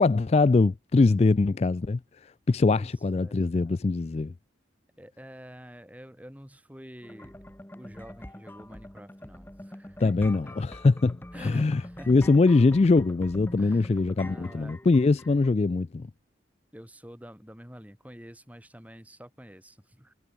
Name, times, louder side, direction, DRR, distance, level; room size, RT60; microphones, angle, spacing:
voice 1, 0.0-2.0 2.5-4.3 10.0-16.1, left 3 dB, 35° left, 0.3 m, -22 dB
voice 2, 2.7-3.8 5.0-7.4 7.7-10.6 11.3-12.3 13.6-14.8 16.7-20.1, equal, 10° right, 3.3 m, -48 dB
sound 1, 7.0-15.5, left 1 dB, 10° left, 1.0 m, -45 dB
head